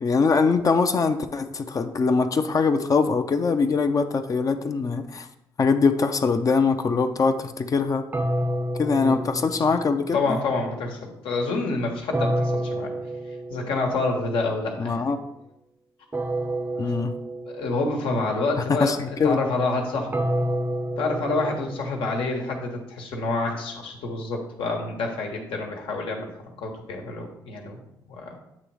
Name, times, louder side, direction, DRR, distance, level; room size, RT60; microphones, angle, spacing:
voice 1, 0.0-5.3 5.6-8.0 8.7-10.4 14.8-15.2 16.8-17.1 18.7-19.4, left 4 dB, 40° left, 7 dB, 0.6 m, -22 dB
sound 1, 8.1-10.2 12.1-14.0 16.1-18.0 20.1-22.3, right 1 dB, 25° right, 0.5 m, -29 dB
voice 2, 10.1-12.9 13.5-15.1 17.4-20.3 21.0-26.3 26.6-27.8 28.1-28.4, left 3 dB, 80° left, 2 dB, 1.3 m, -28 dB
8.3 x 3.1 x 4.8 m, 0.84 s
supercardioid pair, 70°, 9 cm